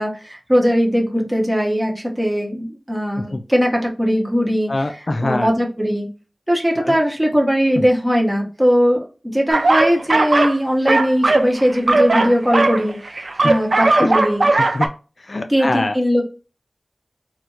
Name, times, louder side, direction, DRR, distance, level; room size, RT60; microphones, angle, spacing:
voice 1, 0.0-4.7 5.2-6.1 6.5-9.0 9.2-14.5 15.5-16.2, equal, 10° right, 0 dB, 0.9 m, -19 dB
voice 2, 4.7-5.5 6.8-7.0 7.7-7.8 14.0-14.1 14.5-14.9 15.2-16.0, left 2 dB, 60° left, 7 dB, 0.3 m, -23 dB
sound 1, 9.5-10.6 10.9-14.9, right 2 dB, 70° right, 0.3 m, -17 dB
4.3 x 2.1 x 2.3 m, 0.34 s
wide cardioid pair, 65°, 0 cm